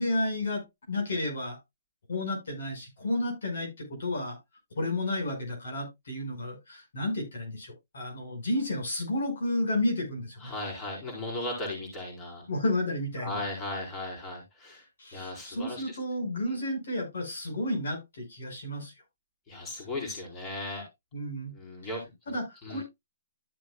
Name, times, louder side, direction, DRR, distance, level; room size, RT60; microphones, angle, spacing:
voice 1, 0.0-1.6 2.1-4.4 4.8-10.5 12.5-13.3 15.0-18.9 21.1-21.5 22.3-22.8, left 1 dB, 70° left, 1 dB, 5.4 m, -32 dB
voice 2, 10.4-12.5 13.2-14.9 15.1-16.0 16.5-16.6 19.5-20.8 21.5-22.1 22.6-22.8, left 2 dB, 20° left, -1 dB, 4.4 m, -37 dB
13.5 x 7.4 x 2.3 m, 0.20 s
hypercardioid pair, 145°, 0 cm